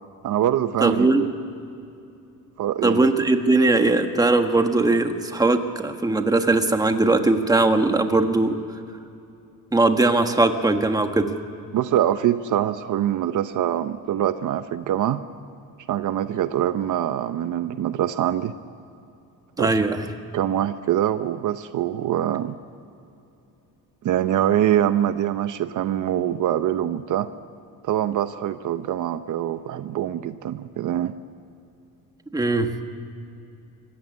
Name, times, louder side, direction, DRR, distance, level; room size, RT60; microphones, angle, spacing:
voice 1, 0.2-1.3 2.6-3.1 11.7-15.2 15.9-18.5 19.6-19.7 20.3-22.5 24.0-27.3 27.8-31.1, right 11 dB, 60° right, 11 dB, 0.8 m, -24 dB
voice 2, 0.8-1.2 2.8-8.6 9.7-11.3 19.6-20.0 32.3-32.7, right 2 dB, 10° right, 6 dB, 1.4 m, -20 dB
25.0 x 16.0 x 9.8 m, 2.7 s
cardioid pair, 140°, 34 cm